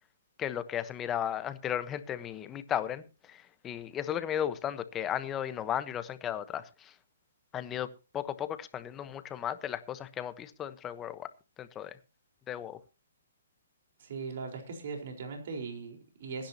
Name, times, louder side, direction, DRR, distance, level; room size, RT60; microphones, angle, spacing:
voice 1, 0.4-6.9 7.5-7.9 8.1-11.3 11.6-12.0 12.5-12.8, left 10 dB, 20° left, 12 dB, 1.1 m, -35 dB
voice 2, 14.0-16.5, right 4 dB, 55° right, 3 dB, 4.4 m, -39 dB
22.0 x 10.0 x 2.9 m, 0.31 s
hypercardioid pair, 145°, 0 cm